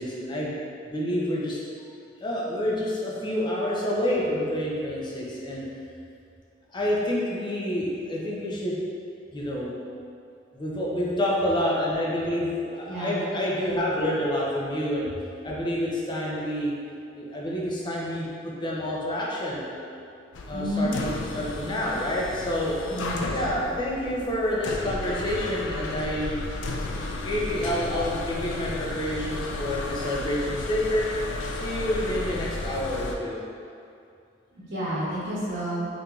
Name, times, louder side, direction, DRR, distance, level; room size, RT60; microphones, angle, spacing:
voice 1, 0.0-1.9 2.2-5.7 6.7-8.8 9.3-9.7 10.5-15.1 15.4-16.7 17.2-19.9 20.4-22.8 23.3-26.4 27.0-31.1 31.5-33.4, equal, 25° left, -4 dB, 0.5 m, -28 dB
sound 1, 20.3-33.2, left 2 dB, 75° left, 0.3 m, -33 dB
voice 2, 20.5-20.9 22.9-23.3 34.7-35.9, equal, 75° right, -12 dB, 1.0 m, -29 dB
4.4 x 2.6 x 2.3 m, 2.4 s
head